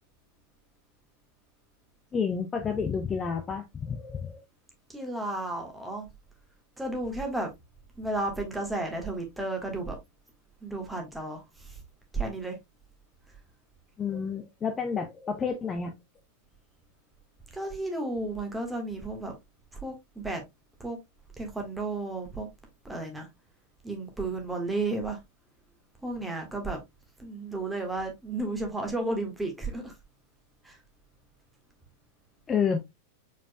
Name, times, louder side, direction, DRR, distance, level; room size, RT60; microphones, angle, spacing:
voice 1, 2.1-4.4 14.0-15.9 32.5-32.8, left 6 dB, 20° left, 0.6 m, -30 dB
voice 2, 4.9-6.1 6.8-7.5 8.0-10.0 10.6-11.8 12.1-12.6 17.5-19.3 19.7-20.4 20.8-21.0 21.4-22.5 22.8-23.3 23.8-25.2 26.0-26.8 27.2-29.9 30.6-30.8, right 2 dB, 5° right, 1.5 m, -33 dB
4.7 x 4.5 x 2.2 m
figure-of-eight pair, 90°, 0 cm